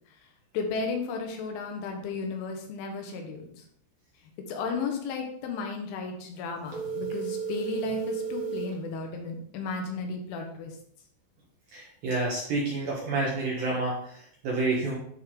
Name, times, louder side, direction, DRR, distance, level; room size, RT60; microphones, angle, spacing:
voice 1, 0.5-3.5 4.5-10.7, left 4 dB, 75° left, 3 dB, 3.4 m, -34 dB
sound 1, 6.7-8.8, right 7 dB, 60° right, 2.9 m, -33 dB
voice 2, 11.7-15.0, right 2 dB, 75° right, -4 dB, 2.1 m, -29 dB
10.5 x 4.4 x 3.7 m, 0.64 s
omnidirectional pair, 6.0 m